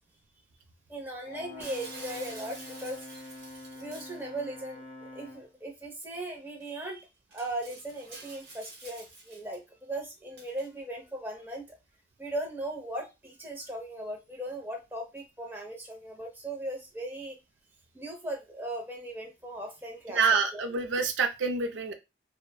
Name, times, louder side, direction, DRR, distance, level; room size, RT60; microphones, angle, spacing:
voice 1, 0.9-3.0 3.8-7.1 7.3-11.6 12.2-17.4 17.9-20.6, right 1 dB, 10° right, 1 dB, 0.6 m, -38 dB
Brass instrument, 1.2-5.5, left 2 dB, 35° left, 0.7 m, -46 dB
Shatter, 1.6-4.2 6.0-6.1 6.6-6.7 7.3-9.6 10.4-10.7, right 3 dB, 65° right, 0.9 m, -48 dB
voice 2, 20.1-21.9, right 5 dB, 80° right, 7 dB, 0.4 m, -27 dB
3.0 x 2.1 x 2.2 m, 0.24 s
head